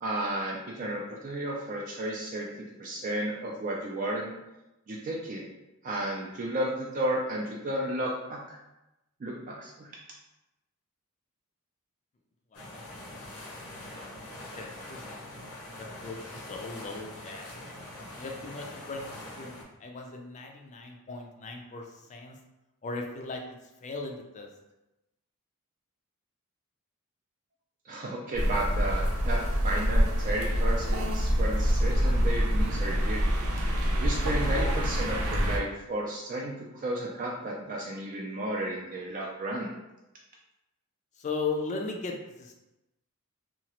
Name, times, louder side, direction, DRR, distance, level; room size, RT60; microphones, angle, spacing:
voice 1, 0.0-2.5 2.8-4.3 4.9-5.4 5.8-8.6 9.2-9.9 27.9-33.2 34.0-39.7, right 1 dB, 40° right, -3 dB, 0.3 m, -33 dB
sound 1, 12.5-19.6, left 1 dB, 85° left, 0.8 m, -43 dB
voice 2, 12.5-12.8 13.1-13.3 13.9-14.3 14.5-15.2 15.8-17.6 18.1-22.4 22.8-23.4 23.8-24.5 41.2-42.5, left 3 dB, 35° left, 2 dB, 0.4 m, -38 dB
sound 2, 28.3-35.6, equal, 85° right, 0.6 m, -26 dB
2.9 x 2.4 x 2.9 m, 0.96 s
head